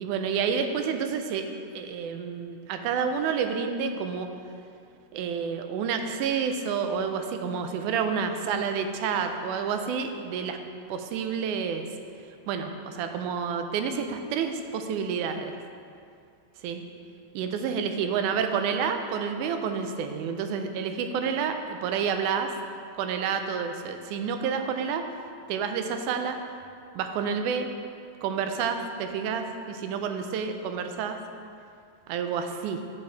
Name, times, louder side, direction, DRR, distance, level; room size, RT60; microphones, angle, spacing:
voice 1, 0.0-1.5 1.7-4.3 5.1-10.6 10.9-11.9 12.5-15.5 16.6-16.9 17.4-22.5 23.0-25.0 25.5-26.4 27.0-27.7 28.2-31.2 32.1-32.8, right 6 dB, 90° right, 6 dB, 2.0 m, -29 dB
8.4 x 6.9 x 3.4 m, 2.4 s
omnidirectional pair, 3.4 m